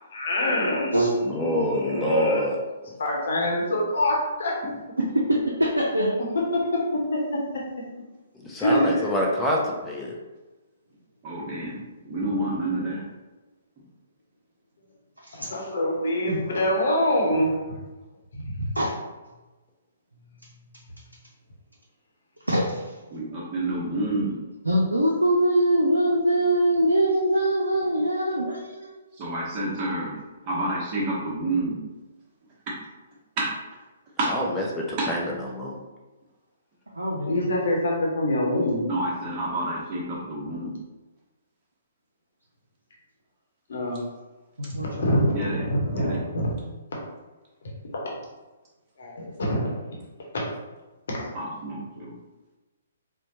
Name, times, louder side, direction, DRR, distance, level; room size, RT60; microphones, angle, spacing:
voice 1, 0.1-2.4 3.0-4.6 6.5-7.6 8.6-9.1 15.3-17.8 18.4-18.6 37.3-38.9 43.7-44.0 44.8-46.6 47.9-48.1 49.0-49.7 51.1-51.3, left 1 dB, 60° left, -2 dB, 1.0 m, -25 dB
voice 2, 1.2-2.6 8.3-10.2 34.3-35.7, left 1 dB, 10° left, -3 dB, 0.7 m, -26 dB
voice 3, 5.3-6.2 15.2-15.7 18.7-18.9 22.5-22.8 24.6-29.0 36.9-37.5 39.9-40.0 44.6-45.1, right 1 dB, 85° right, -3 dB, 0.5 m, -23 dB
voice 4, 11.2-13.0 23.1-24.3 29.2-30.1 30.4-31.8 33.4-33.5 34.2-34.3 35.0-35.1 38.9-40.7 45.3-45.6 45.9-46.2 51.3-52.1, right 2 dB, 30° right, -5 dB, 1.1 m, -29 dB
4.2 x 2.2 x 2.8 m, 1.1 s
figure-of-eight pair, 125°, 0 cm